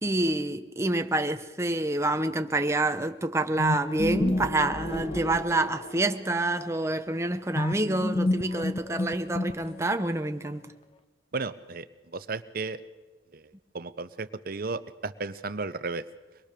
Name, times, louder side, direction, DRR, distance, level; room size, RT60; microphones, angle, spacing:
voice 1, 0.0-10.7, right 2 dB, 15° right, 0.8 m, -27 dB
sound 1, 3.6-6.1 7.6-10.0, left 1 dB, 30° left, 1.1 m, -29 dB
voice 2, 11.3-11.9 12.1-12.8 13.3-13.5 13.7-16.0, right 3 dB, 50° right, 0.8 m, -34 dB
24.0 x 21.5 x 6.7 m
head